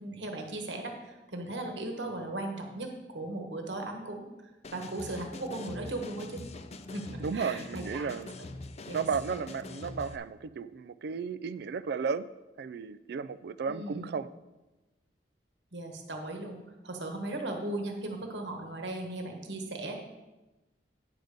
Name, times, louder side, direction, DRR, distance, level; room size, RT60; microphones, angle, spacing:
voice 1, 0.0-4.3 4.7-6.4 6.9-8.1 8.9-9.0 13.7-14.1 15.7-16.6 16.8-20.0, right 2 dB, 80° right, 3 dB, 1.3 m, -37 dB
sound 1, 4.6-10.2, left 2 dB, 40° left, 0.5 m, -44 dB
voice 2, 7.2-8.4 8.9-12.2 12.6-14.3, right 5 dB, 65° right, 15 dB, 0.4 m, -34 dB
9.3 x 5.1 x 6.6 m, 1.1 s
head